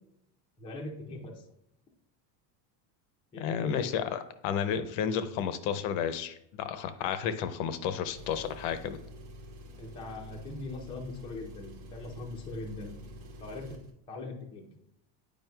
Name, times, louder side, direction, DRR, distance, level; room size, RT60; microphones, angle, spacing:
voice 1, 0.6-1.4 3.3-3.8 9.8-12.9 13.4-13.8 14.1-14.6, left 2 dB, 10° left, -1 dB, 0.4 m, -41 dB
voice 2, 3.4-9.0, left 8 dB, 60° left, 10 dB, 0.6 m, -32 dB
Engine, 8.0-13.9, equal, 70° right, 1.2 m, -47 dB
9.0 x 5.1 x 2.2 m, 0.78 s
cardioid pair, 160°, 48 cm